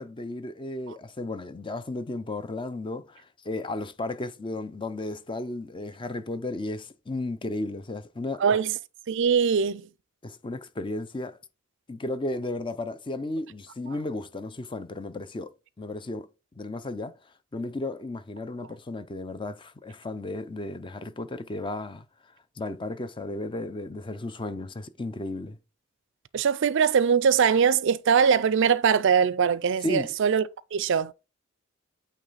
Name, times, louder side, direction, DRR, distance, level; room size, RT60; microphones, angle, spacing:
voice 1, 0.0-8.4 10.2-11.4 11.9-15.5 15.8-16.3 16.6-17.1 17.5-22.0 22.6-25.6 29.8-30.1, left 2 dB, 25° left, 0.5 m, -34 dB
voice 2, 8.4-8.7 9.1-9.9 26.3-30.4 30.7-31.1, right 6 dB, 65° right, 0.4 m, -22 dB
8.9 x 3.1 x 4.0 m
head